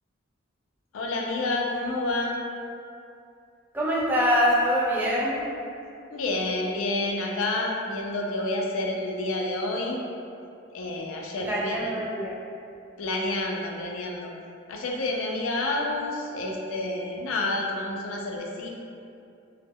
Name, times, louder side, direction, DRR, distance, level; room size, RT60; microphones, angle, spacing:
voice 1, 0.9-2.4 6.1-10.0 10.7-11.9 13.0-14.3 14.7-18.7, left 2 dB, 85° left, 0 dB, 0.4 m, -29 dB
voice 2, 3.7-5.4 11.4-12.4, equal, 10° right, -6 dB, 0.3 m, -24 dB
2.1 x 2.0 x 3.4 m, 2.5 s
head